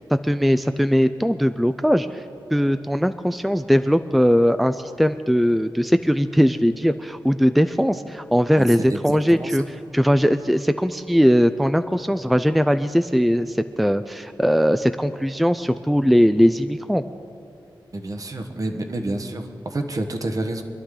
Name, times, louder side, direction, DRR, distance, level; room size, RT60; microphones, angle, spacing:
voice 1, 0.0-2.2 2.5-17.0, equal, ahead, 10 dB, 0.4 m, -20 dB
voice 2, 8.6-9.6 17.9-20.6, right 2 dB, 45° right, 6 dB, 1.3 m, -29 dB
25.0 x 11.5 x 3.8 m, 2.5 s
wide cardioid pair, 70°, 8 cm